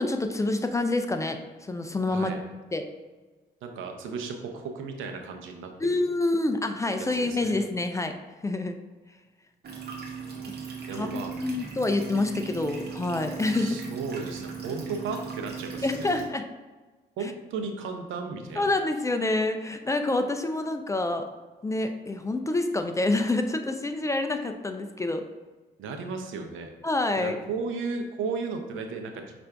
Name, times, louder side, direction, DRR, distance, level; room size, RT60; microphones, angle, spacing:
voice 1, 0.0-1.4 1.7-2.3 2.7-2.8 5.8-8.1 8.4-8.7 10.9-13.8 15.8-16.4 18.6-21.3 21.6-25.3 26.8-27.4, left 2 dB, 15° left, 6 dB, 0.3 m, -27 dB
voice 2, 2.1-2.4 3.6-6.0 7.0-7.6 10.3-11.3 13.5-16.1 17.2-18.7 25.8-26.7 27.2-29.2, right 4 dB, 85° right, 4 dB, 0.7 m, -35 dB
sound 1, 9.6-16.2, right 6 dB, 55° right, 1.0 m, -38 dB
5.7 x 2.5 x 3.3 m, 1.3 s
cardioid pair, 90°, 20 cm